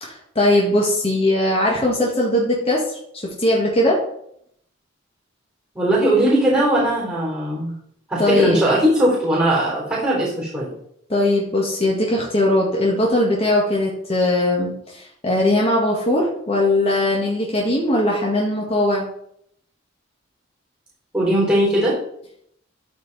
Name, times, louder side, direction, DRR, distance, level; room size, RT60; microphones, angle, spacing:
voice 1, 0.0-4.0 8.2-8.6 11.1-19.1, left 1 dB, 30° left, -3 dB, 1.6 m, -20 dB
voice 2, 5.7-7.7 8.1-10.7 21.1-21.9, right 1 dB, 10° right, -8 dB, 3.9 m, -19 dB
13.0 x 4.7 x 4.1 m, 0.71 s
head